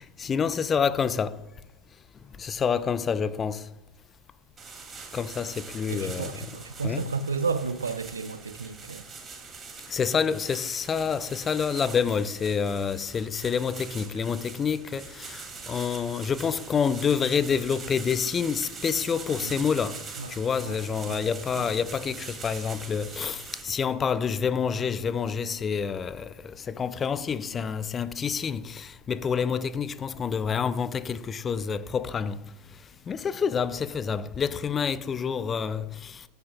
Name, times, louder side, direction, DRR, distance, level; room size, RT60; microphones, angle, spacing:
voice 1, 0.0-1.4 2.4-3.7 5.1-6.5 6.8-7.1 9.9-20.0 20.3-32.4 33.1-36.2, left 6 dB, 20° left, 0.5 m, -28 dB
sound 1, 4.6-23.6, right 5 dB, 20° right, 2.7 m, -43 dB
voice 2, 5.9-9.1 19.4-19.7 20.2-20.3 20.6-20.8 21.1-21.2 21.6-21.7, right 4 dB, 70° right, 0.7 m, -32 dB
14.5 x 10.5 x 2.4 m
figure-of-eight pair, 90°, 0 cm